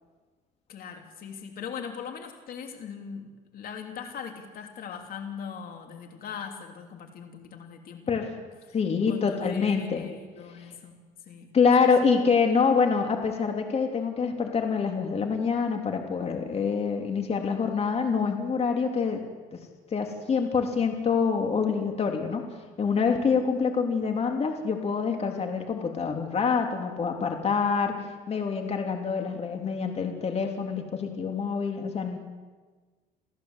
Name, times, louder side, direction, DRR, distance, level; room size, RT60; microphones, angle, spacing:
voice 1, 0.7-8.4 9.1-11.0 11.3-11.5 23.1-23.4, left 6 dB, 60° left, 4 dB, 3.2 m, -40 dB
voice 2, 8.7-10.0 11.5-19.2 19.5-19.6 19.9-22.4 22.8-28.0 28.3-32.2, left 5 dB, 40° left, 3 dB, 3.2 m, -26 dB
28.5 x 16.0 x 8.2 m, 1.4 s
cardioid pair, 110°, 17 cm